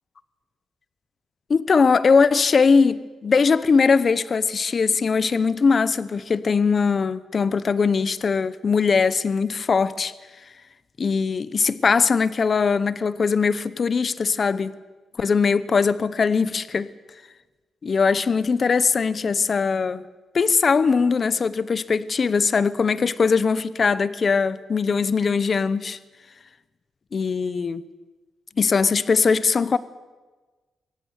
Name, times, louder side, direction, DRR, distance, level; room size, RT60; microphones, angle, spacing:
voice 1, 1.5-10.1 11.0-14.7 15.2-16.9 17.8-20.0 20.3-26.0 27.1-27.8 28.6-29.8, left 5 dB, 40° left, 0.9 m, -20 dB
23.5 x 15.5 x 9.5 m
cardioid pair, 125°, 0 cm